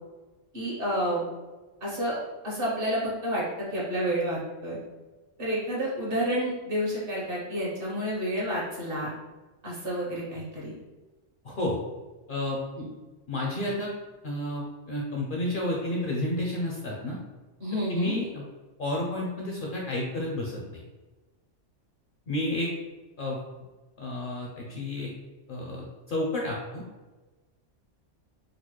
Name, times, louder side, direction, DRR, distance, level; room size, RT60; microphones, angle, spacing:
voice 1, 0.5-1.2 1.8-2.2 2.4-4.8 5.4-9.1 9.6-10.7 12.8-12.9 17.6-18.1, equal, 50° right, -5 dB, 1.1 m, -30 dB
voice 2, 11.4-11.8 12.3-12.6 13.3-13.9 14.2-17.2 17.9-18.4 18.8-20.8 22.3-22.7 23.2-23.4 24.0-25.1 25.5-26.8, left 1 dB, 55° left, -3 dB, 0.6 m, -31 dB
3.9 x 2.0 x 3.1 m, 1.2 s
omnidirectional pair, 1.3 m